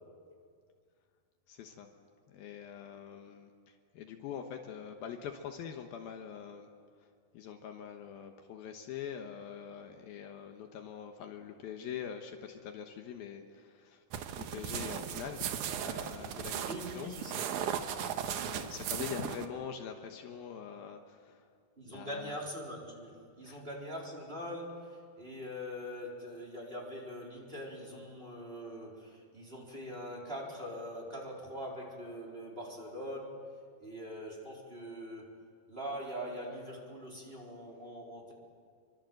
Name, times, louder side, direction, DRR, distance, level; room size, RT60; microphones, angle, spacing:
voice 1, 1.5-1.9 2.3-6.7 7.3-14.0 14.4-17.1 18.4-21.4 21.8-22.4 23.4-23.6, left 8 dB, 75° left, 4 dB, 2.9 m, -44 dB
sound 1, 14.1-19.5, right 9 dB, 65° right, 2.2 m, -37 dB
voice 2, 16.7-17.6 21.8-33.4 33.8-35.3 35.7-38.3, equal, 15° right, -2 dB, 4.2 m, -43 dB
28.0 x 23.5 x 7.9 m, 2.1 s
omnidirectional pair, 4.5 m